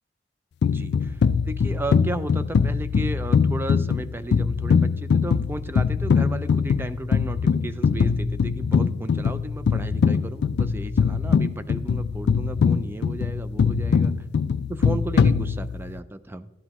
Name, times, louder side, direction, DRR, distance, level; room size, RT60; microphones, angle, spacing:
sound 1, 0.6-16.0, left 6 dB, 65° left, 0.3 m, -22 dB
voice 1, 0.6-14.1 14.7-16.5, right 2 dB, 10° right, 12 dB, 0.4 m, -34 dB
12.0 x 9.5 x 3.0 m, 0.97 s
head